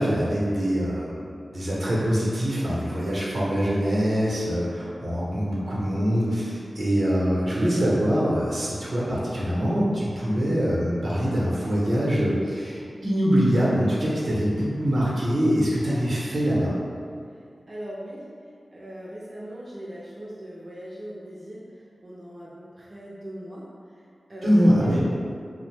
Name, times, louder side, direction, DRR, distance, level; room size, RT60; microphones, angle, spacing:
voice 1, 0.0-16.7 24.4-25.0, equal, 75° right, -7 dB, 0.7 m, -24 dB
voice 2, 17.7-18.3 18.7-23.7 24.3-24.5 24.8-25.0, equal, 45° right, -7 dB, 0.4 m, -39 dB
2.6 x 2.0 x 3.2 m, 2.3 s
cardioid pair, 45°, 0 cm